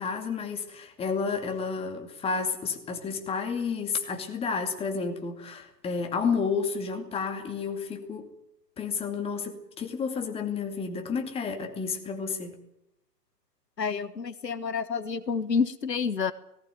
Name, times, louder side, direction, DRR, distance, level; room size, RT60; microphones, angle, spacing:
voice 1, 0.0-8.3 8.8-12.6, left 5 dB, 10° left, 2.4 m, -31 dB
voice 2, 13.8-16.3, left 5 dB, 80° left, 1.6 m, -29 dB
18.5 x 17.5 x 9.2 m
figure-of-eight pair, 130°, 49 cm